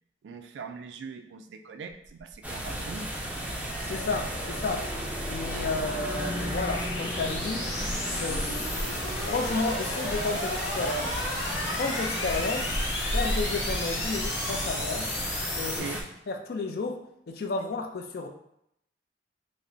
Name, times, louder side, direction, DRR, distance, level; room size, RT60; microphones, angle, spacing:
voice 1, 0.2-3.1 15.8-16.1, right 5 dB, 80° right, 6 dB, 0.3 m, -41 dB
sound 1, 2.1-15.8, left 2 dB, 85° left, 0.8 m, -35 dB
sound 2, 2.4-16.0, right 1 dB, 10° right, 0.4 m, -34 dB
sound 3, 3.3-15.2, left 1 dB, 35° left, 1.3 m, -42 dB
voice 2, 3.8-4.8 5.3-7.6 8.1-8.7 9.2-11.2 11.8-12.7 13.1-15.1 15.6-17.0 17.3-18.3, left 3 dB, 60° left, 4 dB, 0.4 m, -32 dB
5.0 x 2.0 x 2.6 m, 0.77 s
head